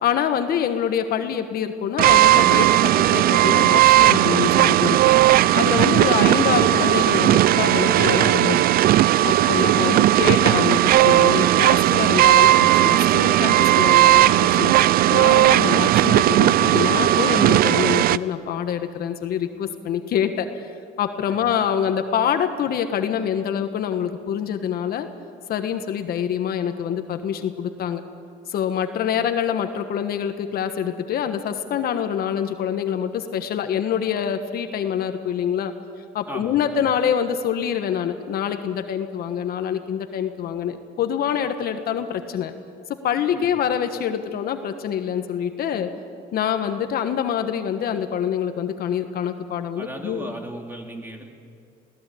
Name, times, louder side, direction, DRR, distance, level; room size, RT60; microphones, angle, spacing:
voice 1, 0.0-5.0 5.5-8.7 9.2-14.7 15.1-25.1 25.5-28.0 28.5-35.7 36.1-42.5 43.0-45.9 46.3-50.3, left 8 dB, 65° left, 7 dB, 1.4 m, -25 dB
sound 1, 2.0-18.2, right 14 dB, 60° right, 0.5 m, -16 dB
voice 2, 36.3-36.9 43.3-43.5 49.8-51.3, right 1 dB, 15° right, 2 dB, 3.1 m, -37 dB
22.0 x 17.0 x 8.5 m, 2.2 s
cardioid pair, 110°, 17 cm